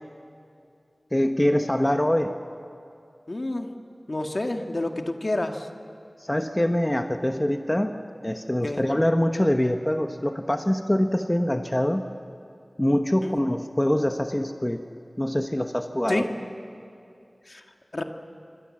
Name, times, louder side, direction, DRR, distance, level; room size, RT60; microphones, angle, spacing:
voice 1, 1.1-2.3 6.2-7.9 8.2-12.0 12.8-14.8 15.2-16.3, left 1 dB, 20° left, 6 dB, 1.1 m, -24 dB
voice 2, 3.3-3.7 4.1-5.7 8.6-8.8 13.2-13.4 16.1-16.3 17.5-17.6 17.9-18.0, left 2 dB, 55° left, 4 dB, 1.8 m, -29 dB
26.5 x 25.0 x 7.6 m, 2.6 s
wide cardioid pair, 60°, 0 cm